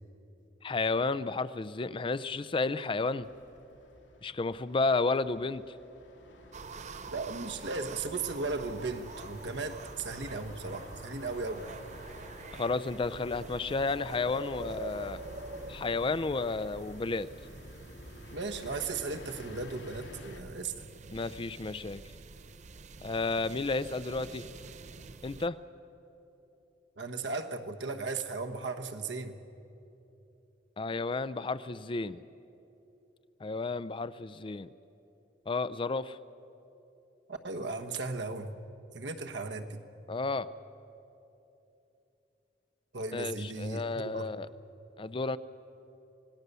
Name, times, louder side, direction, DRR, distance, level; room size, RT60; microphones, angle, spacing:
voice 1, 0.6-3.3 4.2-5.6 12.5-15.2 15.7-17.3 21.1-22.0 23.0-24.4 25.2-25.6 30.8-32.2 33.4-34.7 35.5-36.2 40.1-40.5 43.1-44.5 45.0-45.4, left 3 dB, 30° left, 16 dB, 0.4 m, -32 dB
sound 1, 3.2-20.4, left 1 dB, 85° left, 2.7 m, -51 dB
sound 2, 6.5-25.5, right 3 dB, 40° right, 0.6 m, -46 dB
voice 2, 7.1-11.7 18.3-20.9 27.0-29.4 37.3-38.5 38.9-39.8 42.9-44.4, right 3 dB, 75° right, 5 dB, 1.3 m, -36 dB
26.5 x 18.5 x 6.9 m, 2.9 s
head